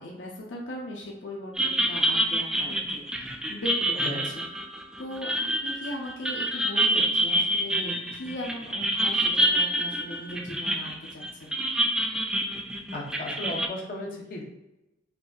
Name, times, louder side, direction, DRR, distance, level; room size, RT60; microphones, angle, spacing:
voice 1, 0.0-4.4 5.0-11.5, equal, 80° left, -2 dB, 0.8 m, -38 dB
sound 1, 1.6-13.7, right 1 dB, 5° right, 0.3 m, -27 dB
voice 2, 12.9-14.4, left 1 dB, 50° left, -2 dB, 1.0 m, -35 dB
5.8 x 2.8 x 2.4 m, 0.96 s
head